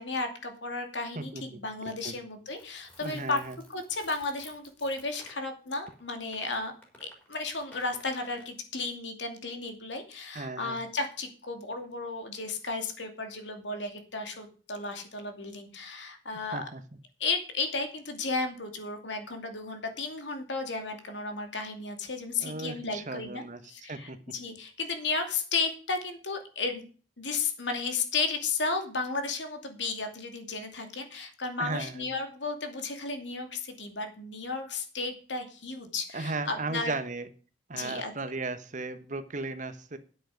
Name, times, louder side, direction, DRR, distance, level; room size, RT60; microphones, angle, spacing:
voice 1, 0.0-3.4 3.7-6.7 7.0-16.6 17.2-23.4 23.7-26.8 27.2-36.9 37.7-38.1, left 3 dB, 85° left, 5 dB, 2.6 m, -34 dB
voice 2, 1.1-1.6 2.0-2.1 3.0-3.6 10.3-10.8 16.5-16.8 22.4-23.6 23.9-24.2 31.6-32.1 36.1-37.3 37.7-40.0, right 3 dB, 45° right, 11 dB, 1.2 m, -36 dB
sound 1, 2.5-5.4 5.9-6.0 6.3-8.5, left 1 dB, 10° left, 4.1 m, -54 dB
9.6 x 8.1 x 6.4 m, 0.39 s
head